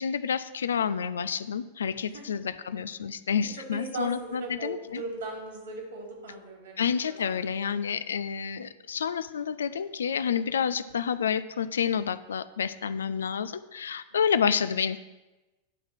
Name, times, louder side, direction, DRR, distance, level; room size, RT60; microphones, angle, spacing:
voice 1, 0.0-5.0 6.8-15.0, left 7 dB, 65° left, 15 dB, 0.4 m, -29 dB
voice 2, 3.5-7.7 14.1-14.2, right 3 dB, 60° right, 0 dB, 2.7 m, -39 dB
11.0 x 3.9 x 7.4 m, 1.1 s
figure-of-eight pair, 90°, 0 cm